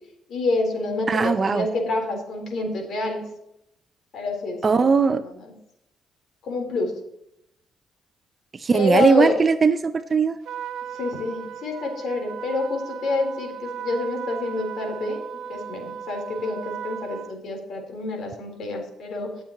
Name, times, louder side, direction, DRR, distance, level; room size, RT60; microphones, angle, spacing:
voice 1, 0.3-3.2 4.1-4.8 6.4-6.9 8.7-9.4 11.0-15.2 15.5-19.3, left 2 dB, 70° left, 2 dB, 3.9 m, -27 dB
voice 2, 1.1-1.7 4.6-5.2 8.5-10.4, right 5 dB, 35° right, 10 dB, 0.5 m, -19 dB
Trumpet, 10.5-17.4, right 8 dB, 75° right, 0.7 m, -36 dB
19.0 x 7.3 x 3.1 m, 0.80 s
cardioid pair, 90°, 0 cm